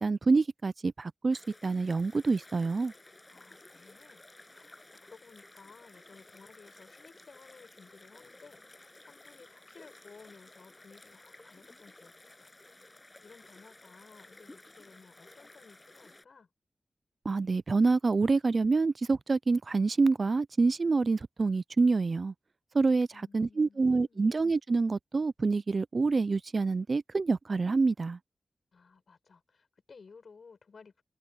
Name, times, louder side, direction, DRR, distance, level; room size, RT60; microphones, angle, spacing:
voice 1, 0.0-2.9 17.3-22.3 22.7-23.1 23.3-28.2, right 4 dB, 50° right, 0.4 m, -27 dB
sound 1, 1.3-16.2, left 2 dB, 25° left, 7.2 m, -55 dB
voice 2, 3.3-4.2 4.5-4.8 5.0-12.5 13.2-16.5 23.1-24.3 28.7-31.0, left 5 dB, 70° left, 6.9 m, -56 dB
wide cardioid pair, 100°, 0 cm